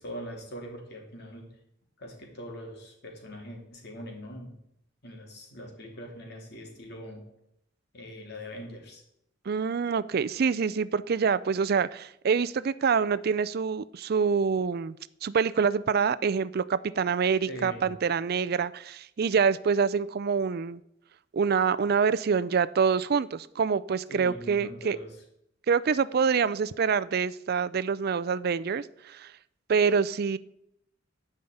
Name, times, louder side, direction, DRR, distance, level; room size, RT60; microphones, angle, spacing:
voice 1, 0.0-1.5 2.0-4.5 5.0-7.3 7.9-9.0 17.5-17.9 24.1-25.2, equal, 55° left, 1 dB, 3.2 m, -42 dB
voice 2, 9.5-15.0 15.2-20.8 21.3-25.0 25.7-29.3 29.7-30.4, right 6 dB, 50° right, 16 dB, 0.4 m, -26 dB
11.5 x 5.6 x 8.7 m, 0.79 s
head